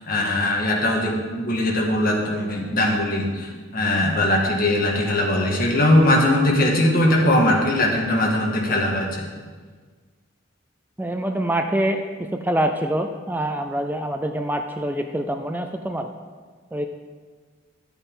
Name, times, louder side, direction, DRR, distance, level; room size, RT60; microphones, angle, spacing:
voice 1, 0.1-9.1, left 1 dB, 50° left, -1 dB, 1.7 m, -20 dB
voice 2, 11.0-12.0 12.3-16.1 16.7-16.9, right 1 dB, 10° right, 5 dB, 0.4 m, -25 dB
12.0 x 7.9 x 3.8 m, 1.5 s
head